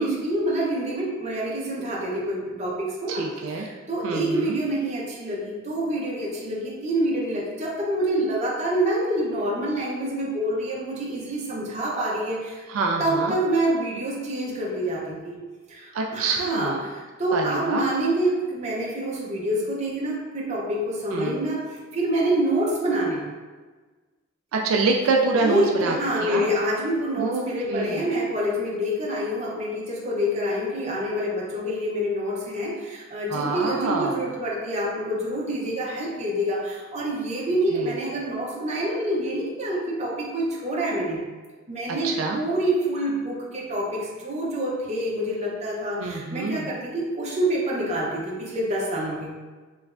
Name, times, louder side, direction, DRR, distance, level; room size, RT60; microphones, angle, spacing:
voice 1, 0.0-12.6 13.0-15.4 15.7-21.6 21.9-23.2 25.4-41.2 41.7-49.3, right 1 dB, 35° right, -4 dB, 0.7 m, -27 dB
voice 2, 3.1-3.7 4.0-4.6 12.7-13.4 15.9-16.8 17.3-17.9 21.1-21.4 24.5-25.9 26.2-26.5 27.2-28.0 33.3-34.2 37.7-37.9 42.0-42.4 46.0-46.7, right 3 dB, 85° right, 2 dB, 0.3 m, -26 dB
3.3 x 3.1 x 2.4 m, 1.3 s
head